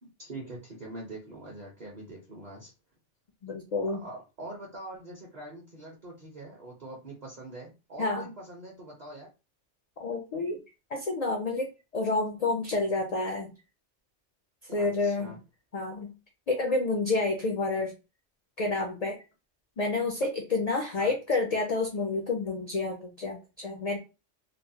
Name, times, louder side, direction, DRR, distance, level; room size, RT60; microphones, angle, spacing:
voice 1, 0.0-2.7 3.9-9.3 14.8-15.4 21.0-21.1, right 2 dB, 40° right, -3 dB, 0.8 m, -43 dB
voice 2, 3.4-4.0 8.0-8.3 10.0-10.6 10.9-13.5 14.7-15.4 15.7-16.1 16.5-17.9 18.6-19.2 19.8-24.0, left 3 dB, 60° left, 2 dB, 0.4 m, -29 dB
3.0 x 2.0 x 2.7 m, 0.29 s
omnidirectional pair, 1.2 m